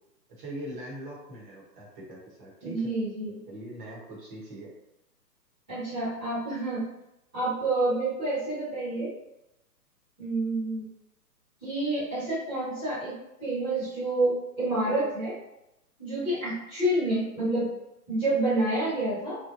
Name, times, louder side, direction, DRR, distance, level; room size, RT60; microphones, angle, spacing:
voice 1, 0.3-2.9 3.5-4.7, right 1 dB, 30° right, -4 dB, 0.9 m, -41 dB
voice 2, 2.6-3.4 5.7-6.9 7.3-9.1 10.2-10.8 11.6-13.1 13.4-15.3 16.0-17.7 18.1-19.4, right 2 dB, 5° right, -23 dB, 0.4 m, -28 dB
3.1 x 2.1 x 2.6 m, 0.89 s
hypercardioid pair, 135°, 49 cm